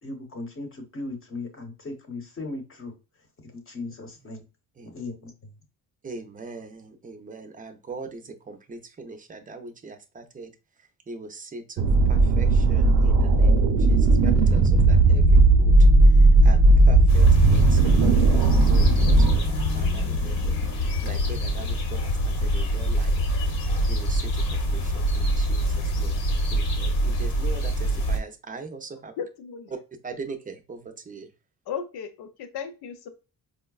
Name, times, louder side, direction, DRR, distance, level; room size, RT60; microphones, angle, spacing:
voice 1, 0.0-2.9 3.4-4.4 4.8-5.3, left 2 dB, 35° left, 5 dB, 0.9 m, -37 dB
voice 2, 6.0-10.5 11.1-15.8 16.4-20.5 20.8-23.1 23.9-26.1 26.5-29.1 30.0-31.3, right 4 dB, 20° right, 6 dB, 0.5 m, -41 dB
sound 1, 11.8-19.4, right 2 dB, 90° right, 0.6 m, -16 dB
sound 2, 13.6-21.9, left 2 dB, ahead, 1.0 m, -33 dB
sound 3, 17.1-28.2, equal, 60° left, 1.0 m, -25 dB
voice 3, 29.2-29.7 31.7-33.1, left 7 dB, 75° left, 7 dB, 0.7 m, -35 dB
4.8 x 2.1 x 2.3 m, 0.31 s
cardioid pair, 135°, 39 cm